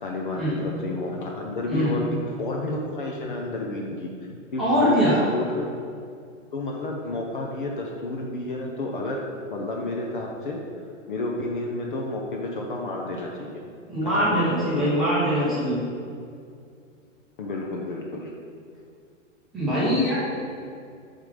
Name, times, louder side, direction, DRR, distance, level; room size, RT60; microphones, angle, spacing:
voice 1, 0.0-4.1 4.5-5.5 6.5-9.2 9.5-10.6 11.1-13.5 14.1-15.1 17.4-18.3, left 2 dB, 40° left, -1 dB, 0.6 m, -30 dB
voice 2, 4.6-5.2 13.9-15.8 19.5-20.2, equal, ahead, -12 dB, 0.9 m, -22 dB
7.2 x 3.7 x 4.9 m, 2.3 s
hypercardioid pair, 170°, 40 cm